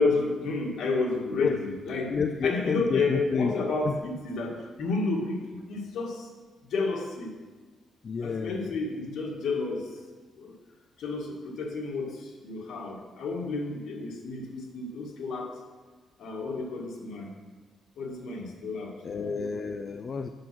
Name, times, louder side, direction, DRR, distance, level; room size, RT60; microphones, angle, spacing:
voice 1, 0.0-2.1 2.4-6.3 6.7-7.3 8.2-10.0 10.4-10.6 11.0-15.6 16.2-17.3 18.0-19.6, left 3 dB, 65° left, -1 dB, 2.0 m, -31 dB
voice 2, 2.1-3.5 3.9-4.0 8.0-8.7 19.0-20.3, left 5 dB, 35° left, 6 dB, 0.4 m, -29 dB
7.8 x 7.2 x 6.0 m, 1.4 s
cardioid pair, 160°, 0 cm